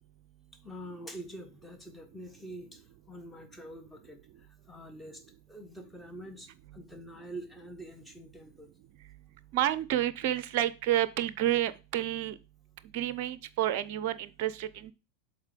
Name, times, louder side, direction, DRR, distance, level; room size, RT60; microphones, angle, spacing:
voice 1, 0.6-8.7, right 1 dB, 5° left, 7 dB, 1.3 m, -46 dB
voice 2, 9.5-12.3 12.9-14.9, right 12 dB, 45° right, 16 dB, 0.5 m, -29 dB
7.2 x 4.1 x 5.0 m, 0.30 s
figure-of-eight pair, 90°, 0 cm